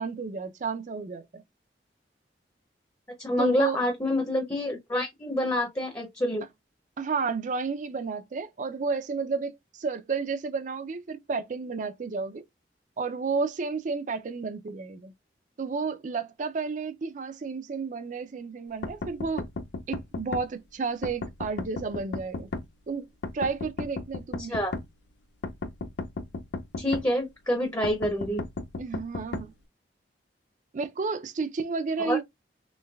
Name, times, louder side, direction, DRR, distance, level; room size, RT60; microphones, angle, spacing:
voice 1, 0.0-1.4 3.4-3.8 7.0-12.4 13.0-15.1 15.6-19.5 19.9-22.5 22.9-23.1 23.3-24.6 28.8-29.5 30.7-32.2, right 4 dB, 45° right, 0.4 m, -31 dB
voice 2, 3.2-6.5 24.4-24.7 26.8-28.4 32.0-32.2, left 1 dB, 20° left, 0.7 m, -27 dB
sound 1, 18.8-20.5 21.0-22.7 23.2-24.9 25.4-27.1 27.8-29.5, left 3 dB, 80° left, 0.4 m, -34 dB
3.2 x 3.1 x 2.3 m
head